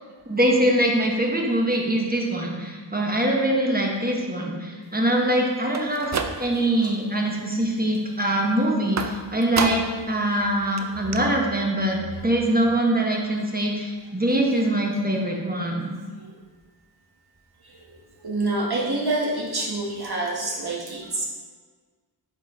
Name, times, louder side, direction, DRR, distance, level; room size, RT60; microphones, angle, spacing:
voice 1, 0.3-6.1 6.4-15.9, right 1 dB, 20° right, -1 dB, 1.1 m, -23 dB
sound 1, 5.6-6.8 7.2-7.7 9.0-10.1 10.4-10.5 10.8-10.9 11.1-11.2, right 5 dB, 40° right, 0.5 m, -30 dB
voice 2, 6.5-6.9 7.7-7.8 8.4-8.6 11.0-11.1 12.2-12.4 13.3-13.4 15.5-15.6 16.2-16.3 17.6-17.8 18.2-21.2, right 2 dB, 60° right, -3 dB, 1.4 m, -28 dB
5.1 x 4.3 x 4.3 m, 1.5 s
wide cardioid pair, 55°, 43 cm